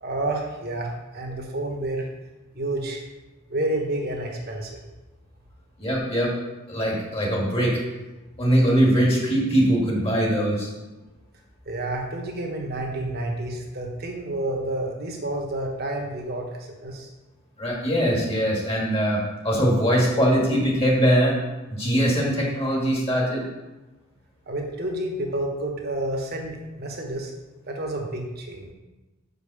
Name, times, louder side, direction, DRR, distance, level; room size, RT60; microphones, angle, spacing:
voice 1, 0.0-2.1 2.5-3.0 3.5-4.8 11.7-17.1 24.5-27.3 27.7-28.7, right 1 dB, 45° right, 1 dB, 1.4 m, -29 dB
voice 2, 5.8-6.3 6.7-7.8 8.4-10.7 17.6-21.4 21.7-23.5, equal, 25° left, -2 dB, 1.9 m, -22 dB
5.9 x 5.5 x 6.9 m, 1.1 s
head